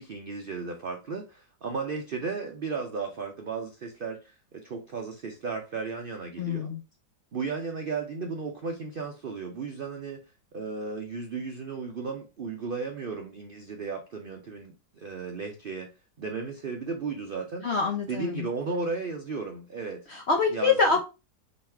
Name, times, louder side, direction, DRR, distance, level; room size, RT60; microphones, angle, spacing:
voice 1, 0.0-6.7 7.3-10.2 10.5-15.9 16.2-17.7 18.1-20.0 20.5-20.8, right 4 dB, 80° right, 0.4 m, -34 dB
voice 2, 6.4-6.8 17.6-18.5 20.1-21.0, left 4 dB, 60° left, 0.7 m, -25 dB
4.0 x 3.1 x 4.3 m
omnidirectional pair, 1.8 m